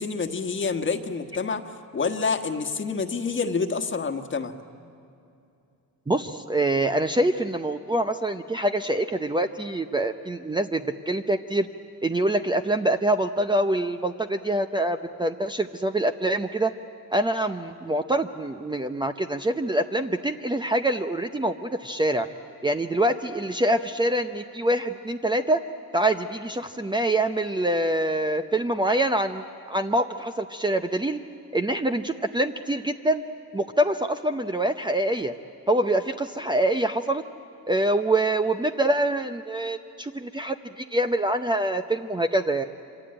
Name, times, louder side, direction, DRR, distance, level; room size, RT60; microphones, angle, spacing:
voice 1, 0.0-4.6, left 4 dB, 35° left, 7 dB, 1.5 m, -28 dB
voice 2, 6.1-11.7 12.0-16.7 17.1-22.3 22.6-25.6 25.9-29.4 29.7-31.2 31.5-33.2 33.5-35.3 35.7-37.2 37.7-42.7, right 1 dB, 15° right, 7 dB, 0.7 m, -25 dB
26.5 x 25.5 x 8.8 m, 2.6 s
cardioid pair, 115°, 35 cm